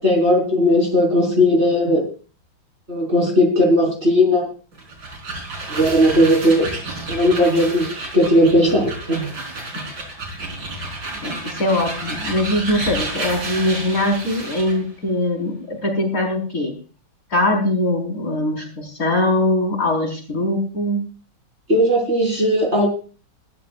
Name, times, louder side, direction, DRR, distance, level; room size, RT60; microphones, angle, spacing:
voice 1, 0.0-2.0 2.9-4.5 5.7-6.7 7.1-9.2 21.7-22.9, left 1 dB, 30° right, -1 dB, 4.7 m, -17 dB
sound 1, 4.7-14.8, right 2 dB, 65° right, 4.7 m, -31 dB
voice 2, 10.6-10.9 11.2-16.7 17.3-21.0, left 1 dB, 40° left, 2 dB, 5.0 m, -22 dB
21.0 x 13.5 x 2.5 m, 0.37 s
omnidirectional pair, 2.2 m